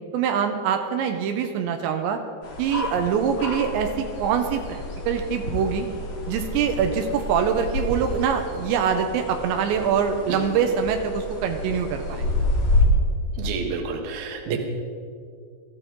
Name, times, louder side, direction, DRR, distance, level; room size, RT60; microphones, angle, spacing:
voice 1, 0.1-2.2 2.6-5.9 6.3-12.2, right 7 dB, 85° right, 5 dB, 3.1 m, -24 dB
sound 1, 2.4-12.8, left 2 dB, 50° left, 4.7 m, -29 dB
voice 2, 13.4-14.6, right 6 dB, 65° right, 4 dB, 3.0 m, -29 dB
21.0 x 14.0 x 3.8 m, 2.2 s
omnidirectional pair, 5.0 m